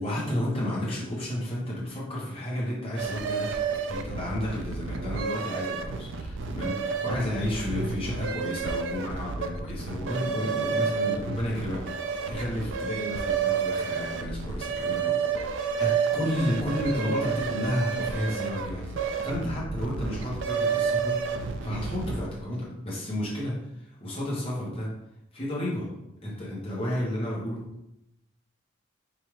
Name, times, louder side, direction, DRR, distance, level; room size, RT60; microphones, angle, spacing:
voice 1, 0.0-24.9 25.3-25.9 26.2-27.7, left 1 dB, 25° left, -5 dB, 1.2 m, -32 dB
sound 1, 3.0-22.4, right 5 dB, 60° right, 0.3 m, -30 dB
4.9 x 2.7 x 3.2 m, 0.85 s
head